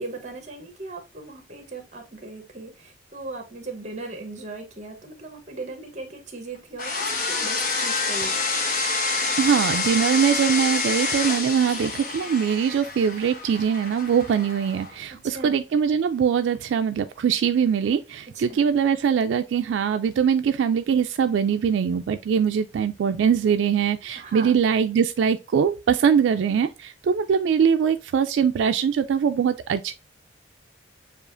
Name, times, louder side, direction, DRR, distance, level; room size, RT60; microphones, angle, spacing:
voice 1, 0.0-8.5 15.2-15.5 18.3-18.6 24.2-24.5, right 3 dB, 40° right, 1.0 m, -38 dB
sound 1, 6.8-14.9, left 3 dB, 45° left, 0.9 m, -27 dB
voice 2, 9.4-29.9, right 7 dB, 85° right, 0.3 m, -22 dB
7.0 x 2.4 x 2.5 m
head